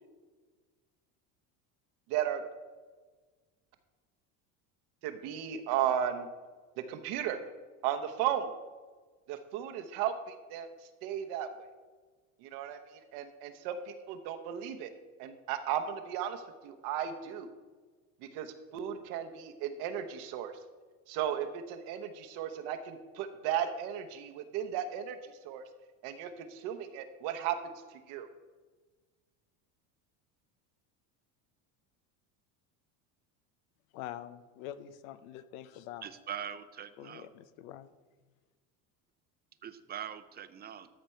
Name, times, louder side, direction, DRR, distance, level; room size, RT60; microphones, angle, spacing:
voice 1, 2.1-2.4 5.0-6.3 6.8-7.4 7.8-8.5 9.3-10.7 11.0-11.7 12.4-14.9 15.2-17.5 18.2-20.5 21.1-25.6 26.0-28.3, right 9 dB, 70° right, 8 dB, 1.0 m, -35 dB
voice 2, 33.9-36.1 37.0-37.9, left 12 dB, 90° left, 14 dB, 0.7 m, -45 dB
voice 3, 36.0-37.3 39.6-40.9, right 9 dB, 25° right, 12 dB, 0.5 m, -42 dB
13.5 x 5.2 x 4.4 m, 1.4 s
supercardioid pair, 120°, 40 cm